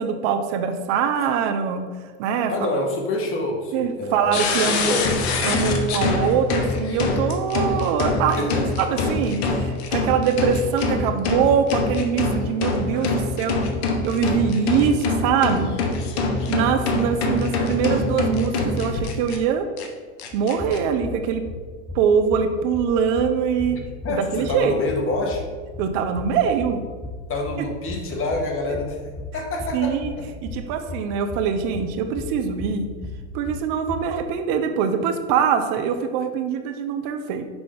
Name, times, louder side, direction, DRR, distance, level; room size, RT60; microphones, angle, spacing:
voice 1, 0.0-1.8 2.2-2.5 3.7-5.0 5.4-13.6 14.0-15.7 16.5-19.7 20.3-21.4 21.9-23.8 24.1-24.8 25.8-26.8 29.7-30.1 30.4-32.9 33.3-37.4, right 7 dB, 55° right, 7 dB, 0.7 m, -23 dB
voice 2, 2.5-5.1 8.4-8.6 24.0-25.5 27.3-29.0 29.3-30.2, left 2 dB, 40° left, 2 dB, 1.4 m, -27 dB
sound 1, 4.3-19.4 19.8-19.9 20.2-20.8, left 3 dB, 65° left, 1.0 m, -24 dB
sound 2, 20.3-34.3, left 2 dB, 15° left, 0.7 m, -36 dB
6.1 x 5.1 x 3.4 m, 1.5 s
hypercardioid pair, 95°, 34 cm